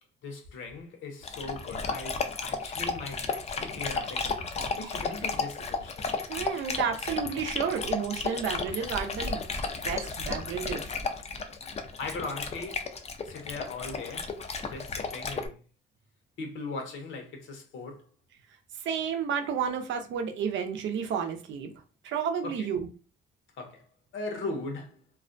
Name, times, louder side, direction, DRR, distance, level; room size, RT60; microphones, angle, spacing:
voice 1, 0.2-6.1 12.0-12.9 13.2-14.3 14.6-15.6 16.4-18.1 22.4-22.7 23.6-23.8 24.1-25.0, left 3 dB, 75° left, 0.8 m, -39 dB
Dog, 1.2-15.5, left 4 dB, 35° left, 0.4 m, -33 dB
voice 2, 6.3-9.4 9.8-10.9 18.7-21.7 22.0-22.9, right 7 dB, 70° right, 0.5 m, -31 dB
2.3 x 2.1 x 2.5 m
cardioid pair, 90°, 20 cm